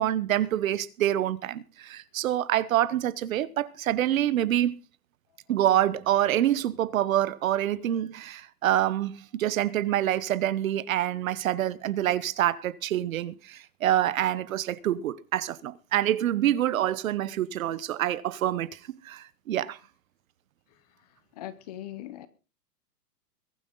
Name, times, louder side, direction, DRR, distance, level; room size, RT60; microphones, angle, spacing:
voice 1, 0.0-4.7 5.5-18.8 19.0-19.8, right 12 dB, 55° right, 1.1 m, -26 dB
voice 2, 21.4-22.3, left 12 dB, 25° left, 0.7 m, -39 dB
22.0 x 9.7 x 3.9 m
supercardioid pair, 170°, 48 cm